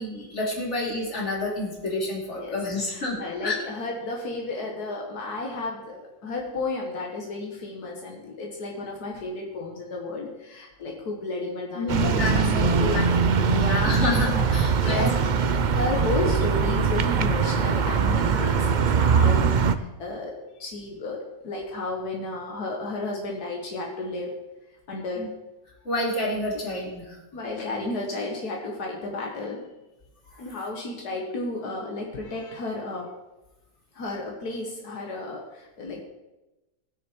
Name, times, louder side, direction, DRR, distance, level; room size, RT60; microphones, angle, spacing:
voice 1, 0.0-3.6 11.7-15.1 18.0-18.5 25.2-25.3 25.8-27.2 30.3-30.4, left 2 dB, 45° left, -2 dB, 3.1 m, -29 dB
voice 2, 2.9-15.2 15.7-21.2 21.4-24.3 24.9-25.3 27.3-29.6 30.4-33.1 33.9-36.0, left 2 dB, 85° left, -1 dB, 2.1 m, -33 dB
sound 1, 11.9-19.8, right 6 dB, 75° right, 0.4 m, -22 dB
20.0 x 6.6 x 4.6 m, 1.0 s
omnidirectional pair, 1.6 m